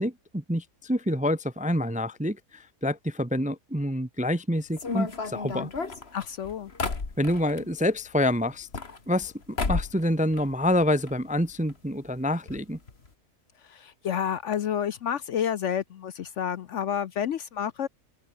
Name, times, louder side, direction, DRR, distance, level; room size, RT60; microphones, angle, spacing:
voice 1, 0.0-5.7 7.2-8.7 9.1-12.8, left 1 dB, 5° right, 0.6 m, -27 dB
sound 1, 4.7-7.7 8.5-9.3 9.6-10.0 10.3-11.1 11.4-11.5 11.7-11.8 12.5-12.6 12.9-13.1, left 4 dB, 40° left, 2.4 m, -32 dB
voice 2, 6.1-6.7 13.6-17.9, left 9 dB, 60° left, 0.9 m, -30 dB
open air
omnidirectional pair, 1.6 m